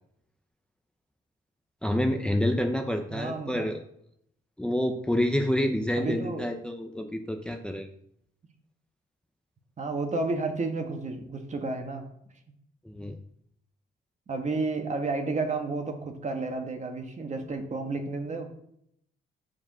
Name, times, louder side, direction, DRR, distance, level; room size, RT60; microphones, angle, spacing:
voice 1, 1.8-3.8 4.6-7.9 12.8-13.2, left 1 dB, 5° left, 4 dB, 0.7 m, -28 dB
voice 2, 3.1-3.7 6.0-6.5 9.8-12.0 14.3-18.7, right 3 dB, 35° right, 5 dB, 1.6 m, -31 dB
7.0 x 4.9 x 6.2 m, 0.71 s
cardioid pair, 90°, 20 cm